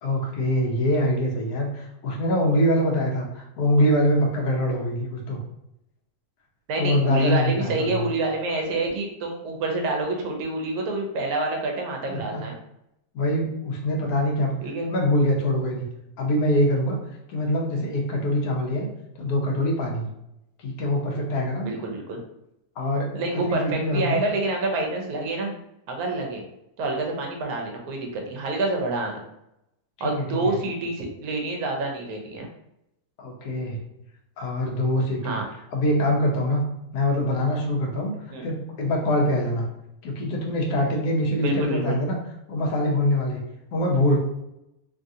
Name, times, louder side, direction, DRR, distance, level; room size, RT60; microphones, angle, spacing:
voice 1, 0.0-5.4 6.8-8.1 12.1-12.4 13.1-14.6 14.9-15.8 16.2-17.0 17.3-18.9 19.2-20.1 20.6-21.7 22.8-23.1 23.4-24.2 30.0-30.5 33.2-33.8 34.4-35.4 35.7-36.6 36.9-38.1 38.4-39.6 40.0-42.2 42.5-43.4 43.7-44.2, left 1 dB, 75° left, 0 dB, 1.2 m, -24 dB
voice 2, 6.7-12.6 14.6-14.9 21.6-22.2 23.1-25.6 25.9-26.4 26.8-29.2 30.0-32.5 35.2-35.4 38.3-38.4 41.4-42.0, right 2 dB, 75° right, 2 dB, 1.1 m, -27 dB
3.1 x 2.4 x 2.6 m, 0.83 s
omnidirectional pair, 1.6 m